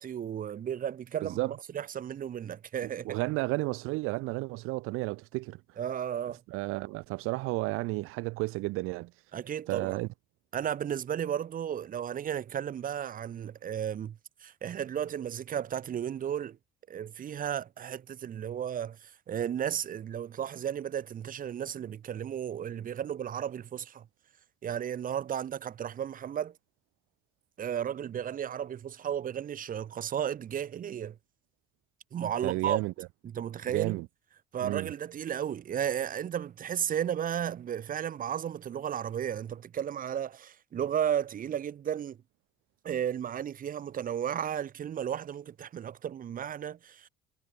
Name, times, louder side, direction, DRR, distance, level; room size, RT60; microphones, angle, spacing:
voice 1, 0.0-3.2 5.8-6.4 9.3-10.0 10.5-16.6 16.9-24.1 24.6-26.6 27.6-31.2 32.1-32.8 33.2-34.0 34.5-42.2 42.8-47.1, right 9 dB, 40° right, 1.9 m, -34 dB
voice 2, 2.8-5.6 6.5-9.1 9.7-10.1 32.4-33.1 33.7-34.1 34.6-34.9, right 22 dB, 85° right, 0.6 m, -32 dB
cardioid pair, 140°, 21 cm